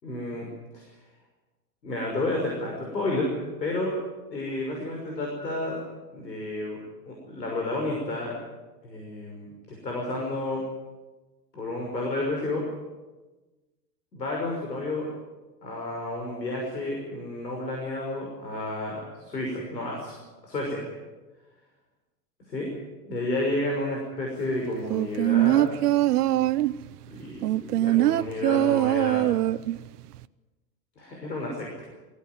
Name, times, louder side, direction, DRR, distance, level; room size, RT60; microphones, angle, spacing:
voice 1, 0.0-0.5 0.7-0.9 1.8-3.3 3.6-3.9 4.3-5.8 6.1-6.8 7.1-8.4 8.8-10.6 11.5-12.6 14.1-15.1 15.6-20.9 22.5-22.7 23.1-25.7 27.1-29.3 31.0-31.8, left 2 dB, 90° left, -1 dB, 6.0 m, -31 dB
sound 1, 24.9-26.8 27.4-29.8 30.1-30.2, right 14 dB, 70° right, 0.9 m, -22 dB
23.0 x 17.0 x 9.5 m, 1.2 s
hypercardioid pair, 95°, 49 cm